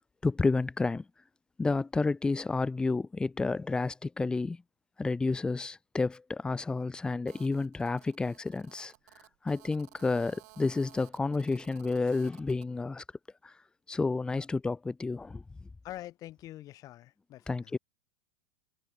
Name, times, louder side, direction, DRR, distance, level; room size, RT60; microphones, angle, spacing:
voice 1, 0.2-1.0 1.6-4.6 5.0-8.9 9.4-13.0 13.4-13.5 13.9-15.4 17.5-17.8, left 3 dB, 10° left, 0.5 m, -30 dB
Telephone, 7.3-12.7, right 24 dB, 55° right, 4.4 m, -57 dB
voice 2, 15.8-17.7, left 14 dB, 40° left, 4.6 m, -45 dB
hypercardioid pair, 95°, 10 cm